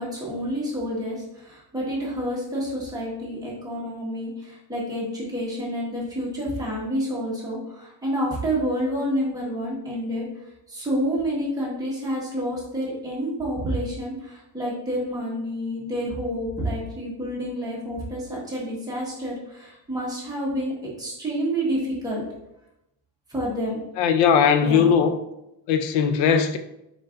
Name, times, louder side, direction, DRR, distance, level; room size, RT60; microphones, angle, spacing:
voice 1, 0.0-10.3 10.7-22.2 23.3-23.8 24.6-24.9, equal, 10° right, 1.2 m, -29 dB
voice 2, 24.0-25.2 25.7-26.6, left 7 dB, 80° left, 0.5 m, -19 dB
4.5 x 4.4 x 2.5 m
cardioid pair, 165°, 43 cm